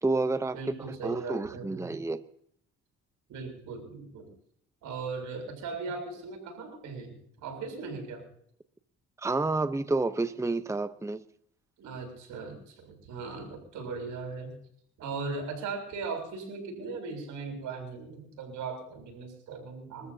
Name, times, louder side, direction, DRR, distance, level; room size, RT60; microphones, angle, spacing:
voice 1, 0.0-2.2 9.2-11.2, right 3 dB, 10° right, 12 dB, 0.8 m, -30 dB
voice 2, 0.5-1.9 3.3-4.3 4.8-8.2 11.8-14.6 15.0-20.1, right 4 dB, 85° right, 4 dB, 6.9 m, -38 dB
29.0 x 13.5 x 2.8 m, 0.67 s
cardioid pair, 90°, 30 cm